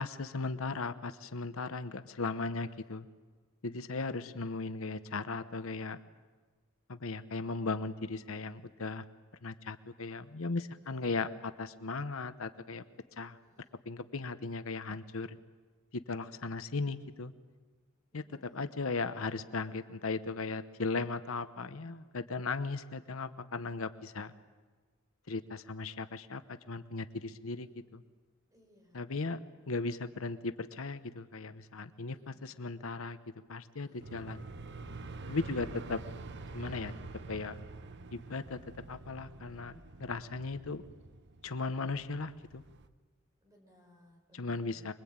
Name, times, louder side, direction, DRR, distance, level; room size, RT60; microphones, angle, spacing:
voice 1, 0.0-3.1 3.6-6.0 6.9-9.0 9.4-12.8 13.2-13.4 13.8-15.4 15.9-17.3 18.1-18.2 18.5-24.3 25.3-26.4 26.7-28.0 28.9-29.4 29.7-33.2 33.5-34.4 35.3-36.0 36.5-36.9 37.3-37.6 38.1-38.6 38.9-39.7 40.0-40.8 41.4-42.6 44.3-44.9, left 3 dB, 75° left, 11 dB, 0.9 m, -37 dB
voice 2, 2.5-3.0 10.8-11.3 13.3-13.8 18.1-18.7 27.5-27.9 28.5-29.7 32.1-32.6 33.8-34.4 35.5-36.1 43.4-44.9, left 1 dB, 15° right, 1 dB, 5.3 m, -65 dB
sound 1, 34.0-42.9, right 3 dB, 55° right, 1.0 m, -47 dB
25.0 x 22.0 x 8.8 m, 1.4 s
head